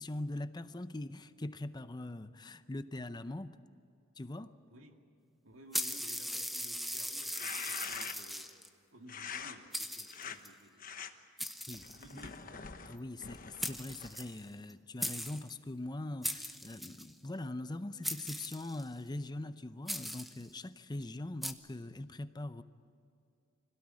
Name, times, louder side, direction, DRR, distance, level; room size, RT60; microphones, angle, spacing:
voice 1, 0.0-3.6 4.2-4.6 11.7-11.9 12.3-12.4 12.9-22.6, left 2 dB, 20° left, 0.6 m, -42 dB
voice 2, 5.4-8.5 8.9-10.9 11.9-12.9, right 1 dB, 75° right, 2.2 m, -56 dB
sound 1, 5.7-8.7 9.3-9.4 9.7-10.5 11.4-12.4 13.3-13.4 13.6-14.7 15.0-15.5 16.2-17.1 18.0-18.9 19.9-20.5 21.4-21.5, equal, ahead, 0.9 m, -39 dB
sound 2, 7.2-8.4 9.1-9.6 10.1-10.4 10.8-11.1 11.7-14.3, left 6 dB, 45° left, 1.2 m, -44 dB
25.5 x 17.5 x 9.6 m
head